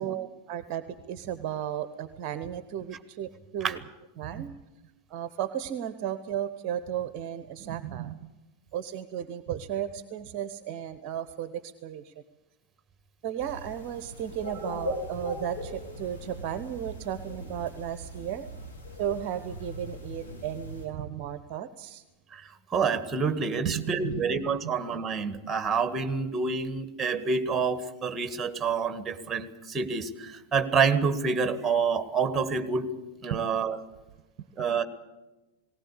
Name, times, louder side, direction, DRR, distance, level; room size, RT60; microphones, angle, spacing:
voice 1, 0.0-3.8 4.2-4.5 5.1-8.2 8.7-12.1 13.2-18.5 19.0-22.0 23.6-24.3 24.6-24.7 33.3-33.4, right 10 dB, 40° right, 12 dB, 0.9 m, -34 dB
sound 1, 13.4-20.9, equal, 60° left, 8.0 m, -40 dB
voice 2, 22.7-32.9 33.2-33.8 34.6-34.8, right 5 dB, 15° right, 10 dB, 1.8 m, -28 dB
19.0 x 18.5 x 8.4 m, 1.1 s
figure-of-eight pair, 90°, 0 cm